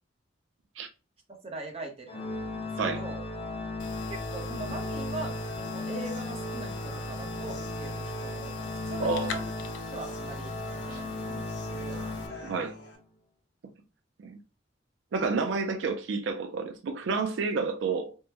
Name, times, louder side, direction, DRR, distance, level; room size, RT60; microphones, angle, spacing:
voice 1, 1.4-2.3 2.6-3.2 4.1-9.4 9.9-11.5 11.8-12.0, right 3 dB, 30° right, 0.7 m, -41 dB
Organ, 2.1-12.9, left 2 dB, 30° left, 0.5 m, -36 dB
sound 1, 3.8-12.3, left 6 dB, 80° left, 0.5 m, -46 dB
Human voice, 5.0-13.0, left 2 dB, 65° left, 0.9 m, -51 dB
voice 2, 9.0-9.4 10.9-11.0 12.2-12.7 14.2-14.4 15.1-18.2, right 4 dB, 75° right, 0.4 m, -30 dB
3.5 x 2.0 x 2.8 m
head